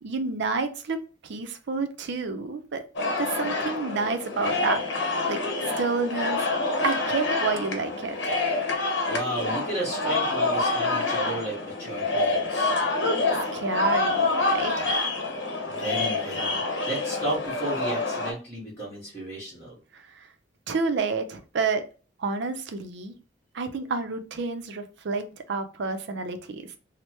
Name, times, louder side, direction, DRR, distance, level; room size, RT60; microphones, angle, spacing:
voice 1, 0.0-2.8 3.2-6.4 6.8-8.3 13.3-14.9 19.9-20.0 20.7-21.8 22.2-23.2 23.5-26.7, right 4 dB, 65° right, 8 dB, 0.5 m, -30 dB
sound 1, 2.9-18.3, left 2 dB, 65° left, 0.8 m, -27 dB
voice 2, 9.1-12.8 15.8-16.6 16.9-19.7, right 2 dB, 15° left, -9 dB, 1.4 m, -33 dB
3.2 x 2.0 x 2.9 m, 0.37 s
head